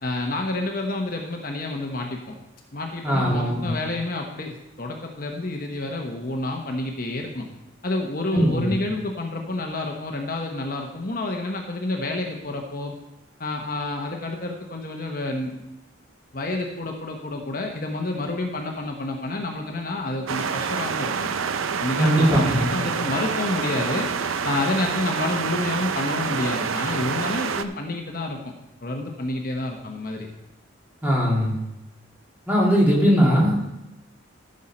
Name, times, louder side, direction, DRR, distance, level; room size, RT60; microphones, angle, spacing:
voice 1, 0.0-2.3 2.7-7.5 7.8-12.9 13.4-15.5 16.3-21.3 21.8-24.1 24.4-28.4 28.8-30.3, left 2 dB, 45° left, 2 dB, 1.0 m, -29 dB
voice 2, 3.0-3.7 8.3-8.7 22.0-22.7 31.0-31.6 32.5-33.5, equal, 10° right, -4 dB, 2.6 m, -20 dB
sound 1, 20.3-27.6, right 6 dB, 90° right, 0.6 m, -27 dB
14.0 x 6.5 x 4.3 m, 0.93 s
head